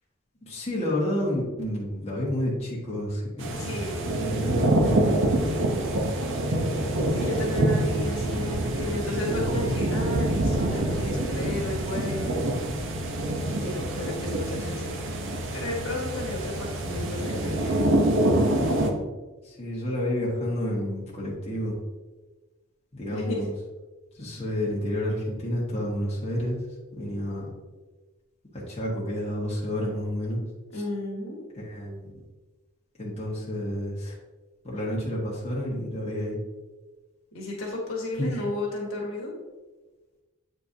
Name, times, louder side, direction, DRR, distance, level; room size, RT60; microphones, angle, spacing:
voice 1, 0.4-3.7 4.2-5.3 19.4-21.8 22.9-23.5 24.2-26.6 26.9-27.5 28.7-30.4 30.7-30.8 31.6-32.1 33.0-34.1 34.6-36.4 38.2-38.3, left 1 dB, 30° left, -6 dB, 1.5 m, -30 dB
sound 1, 3.4-18.9, right 1 dB, 60° right, 0.8 m, -26 dB
voice 2, 3.6-4.1 7.1-12.5 13.5-15.0 15.5-17.8 23.1-23.5 30.7-31.4 37.3-39.3, left 1 dB, 65° left, -2 dB, 1.6 m, -33 dB
8.3 x 4.4 x 2.7 m, 1.2 s
head